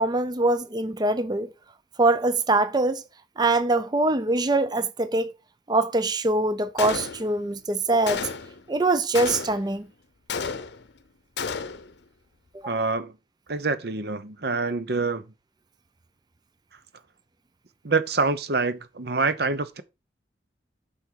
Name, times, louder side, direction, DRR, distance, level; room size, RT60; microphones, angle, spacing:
voice 1, 0.0-1.5 2.0-3.0 3.4-5.3 5.7-8.3 8.7-9.9 12.6-12.7, right 2 dB, 25° right, 0.5 m, -23 dB
Gunshot gunfire, 6.8-7.5 8.1-8.6 9.1-9.8 10.3-11.0 11.4-11.9, left 5 dB, 70° left, 0.7 m, -32 dB
voice 2, 12.7-13.2 13.5-15.3 17.8-19.8, right 3 dB, 60° right, 0.9 m, -26 dB
8.7 x 5.4 x 4.7 m
head